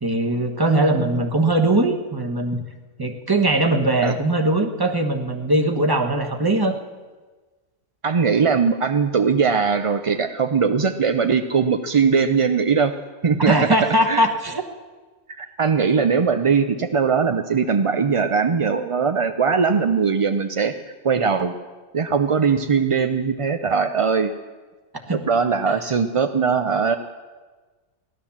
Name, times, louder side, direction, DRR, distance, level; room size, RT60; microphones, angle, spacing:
voice 1, 0.0-2.6 3.0-6.8 13.4-14.6 25.1-25.2, right 1 dB, 20° right, 5 dB, 1.2 m, -20 dB
voice 2, 0.7-1.1 4.0-4.1 8.0-12.9 13.2-13.7 14.1-14.2 15.3-20.8 21.0-21.5 21.9-24.3 25.1-27.0, right 5 dB, 45° right, 8 dB, 0.4 m, -20 dB
17.0 x 11.5 x 7.2 m, 1.3 s
omnidirectional pair, 1.3 m